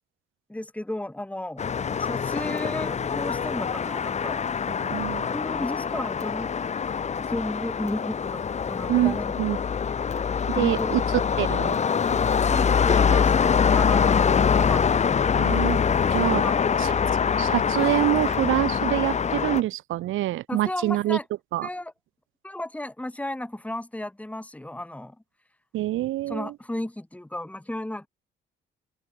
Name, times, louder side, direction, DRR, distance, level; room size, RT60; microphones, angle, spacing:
voice 1, 0.5-1.6 2.0-4.4 5.2-6.5 7.2-9.3 10.5-10.9 12.3-15.0 16.4-16.8 20.5-21.2 21.6-21.9 22.4-25.1 26.3-28.1, left 1 dB, 5° left, 3.3 m, -34 dB
sound 1, 1.6-19.6, left 6 dB, 35° left, 0.8 m, -24 dB
voice 2, 4.8-5.3 8.9-9.6 10.5-11.0 11.4-11.7 12.1-12.2 15.4-15.8 16.1-16.4 16.8-16.9 17.4-21.2 21.5-21.7 25.7-26.5, right 15 dB, 85° right, 2.7 m, -26 dB
open air
cardioid pair, 90°, 20 cm